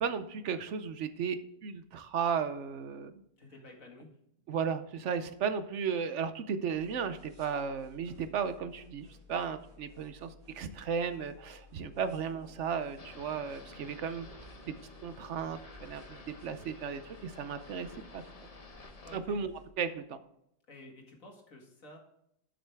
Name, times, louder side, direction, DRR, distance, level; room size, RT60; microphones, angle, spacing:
voice 1, 0.0-3.2 4.5-14.7 15.0-18.2 19.1-19.5 19.8-20.2, right 6 dB, 65° right, 11 dB, 1.0 m, -35 dB
voice 2, 3.4-4.1 19.0-19.4 20.7-22.0, left 1 dB, 85° left, 1 dB, 2.4 m, -52 dB
Death by Zombie, 6.7-19.7, left 3 dB, 30° right, 2.0 m, -56 dB
sound 1, 13.0-19.2, left 3 dB, 30° left, 0.9 m, -52 dB
12.0 x 6.5 x 3.5 m, 0.76 s
omnidirectional pair, 1.4 m